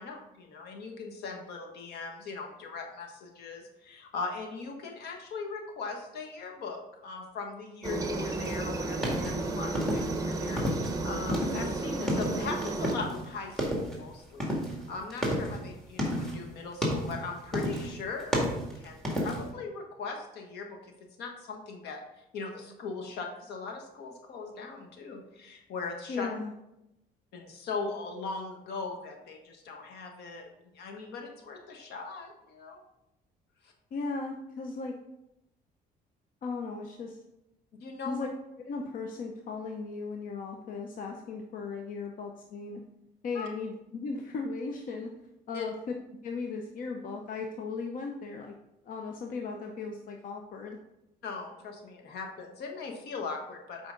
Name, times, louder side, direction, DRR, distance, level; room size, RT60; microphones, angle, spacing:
voice 1, 0.0-20.8 21.2-26.3 27.3-30.5 30.7-32.8 33.6-33.7 37.8-38.3 43.3-43.5 45.5-45.7 51.2-53.9, left 4 dB, 75° left, 3 dB, 1.4 m, -39 dB
Aircraft, 7.8-12.9, right 2 dB, 20° right, 0.9 m, -33 dB
sound 1, 8.4-11.0 11.2-13.3 13.5-14.0 14.4-16.4 16.7-17.2 17.5-17.9 18.2-19.5, equal, ahead, 2.0 m, -31 dB
voice 2, 26.1-26.5 33.9-34.9 36.4-37.2 38.1-38.3 38.7-42.8 43.2-45.1 45.5-45.7 46.2-48.5 48.9-50.8, left 4 dB, 55° left, 3 dB, 0.7 m, -37 dB
7.4 x 5.0 x 3.8 m, 0.87 s
cardioid pair, 110°, 17 cm